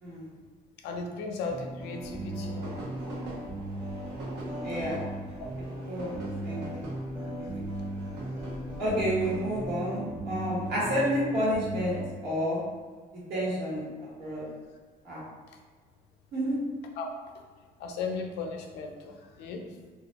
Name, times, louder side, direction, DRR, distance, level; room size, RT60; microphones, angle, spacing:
voice 1, 0.8-2.9 17.0-17.4 17.8-19.7, left 4 dB, 85° left, 3 dB, 0.4 m, -36 dB
sound 1, 1.5-12.1, right 1 dB, 5° right, 0.5 m, -37 dB
sound 2, 2.0-9.7, right 1 dB, 85° right, 0.7 m, -44 dB
voice 2, 4.6-5.0 5.9-6.1 6.4-6.8 7.2-7.7 8.8-12.0 12.2-12.6 13.3-13.8 14.2-14.4 15.0-15.3 16.3-16.6, equal, 70° right, -7 dB, 1.2 m, -30 dB
2.3 x 2.1 x 2.8 m, 1.5 s
cardioid pair, 110°, 17 cm